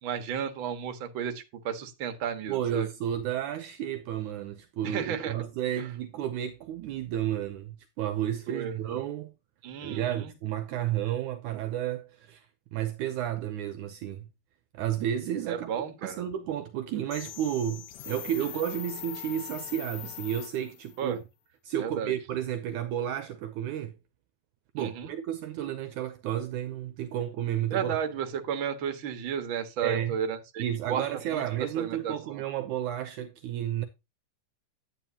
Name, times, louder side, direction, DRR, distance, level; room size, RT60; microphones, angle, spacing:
voice 1, 0.0-2.9 4.8-5.4 5.8-5.9 8.5-8.7 9.6-10.3 15.5-16.2 21.0-21.2 21.8-22.1 24.8-25.1 27.7-31.4 31.8-32.4, right 8 dB, 45° right, 1.8 m, -33 dB
voice 2, 2.5-9.3 9.8-12.5 12.7-14.3 14.7-21.2 21.6-24.0 24.7-28.0 29.8-30.2 30.6-33.9, right 11 dB, 75° right, 2.1 m, -32 dB
sound 1, 17.1-21.0, left 12 dB, 80° left, 3.0 m, -41 dB
11.5 x 9.0 x 2.8 m
omnidirectional pair, 3.9 m